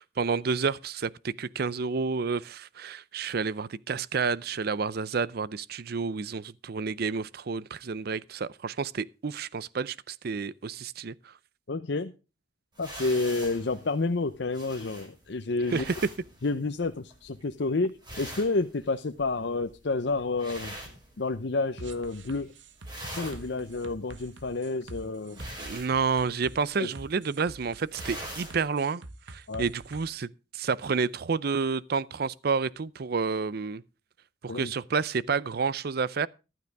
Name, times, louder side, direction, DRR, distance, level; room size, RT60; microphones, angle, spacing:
voice 1, 0.0-11.3 15.7-15.9 25.6-29.0 29.3-33.8 34.4-36.3, right 5 dB, 55° right, 0.5 m, -30 dB
voice 2, 11.7-12.1 12.8-15.8 16.4-20.8 21.2-22.5 23.1-25.4 26.8-26.9 29.5-29.7 34.5-34.7, left 3 dB, 65° left, 0.7 m, -30 dB
sound 1, 12.7-21.7 22.0-22.4 22.7-28.7, right 1 dB, 25° right, 5.6 m, -44 dB
sound 2, 21.8-30.0, right 2 dB, 80° right, 1.2 m, -46 dB
14.5 x 12.0 x 3.4 m
head